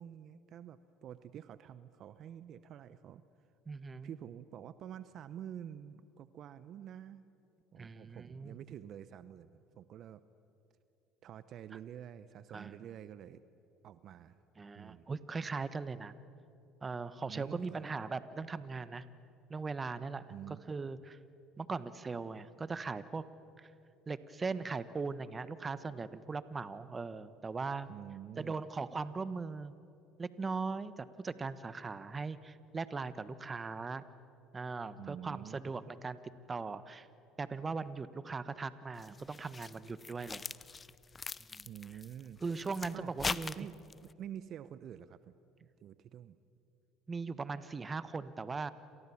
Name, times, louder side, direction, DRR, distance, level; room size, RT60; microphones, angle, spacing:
voice 1, 0.0-3.2 4.0-7.2 7.7-10.2 11.2-13.4 13.8-14.4 14.7-15.1 17.3-17.8 20.3-20.6 27.9-28.6 35.0-35.7 41.6-42.4 42.9-43.8 44.2-45.3 45.8-46.4, right 10 dB, 55° right, 14 dB, 0.8 m, -48 dB
voice 2, 3.7-4.1 7.8-8.6 12.5-12.8 14.6-16.1 16.8-19.0 19.5-21.2 21.6-23.2 23.6-23.7 24.1-27.9 28.4-29.7 30.2-34.0 34.5-36.2 36.5-37.1 37.4-40.5 41.5-41.7 42.4-43.7 47.1-48.7, right 4 dB, 25° right, 14 dB, 1.3 m, -39 dB
sound 1, 39.0-44.1, left 4 dB, 30° left, 0.7 m, -42 dB
29.0 x 27.5 x 7.2 m, 2.7 s
hypercardioid pair, 70°, 0 cm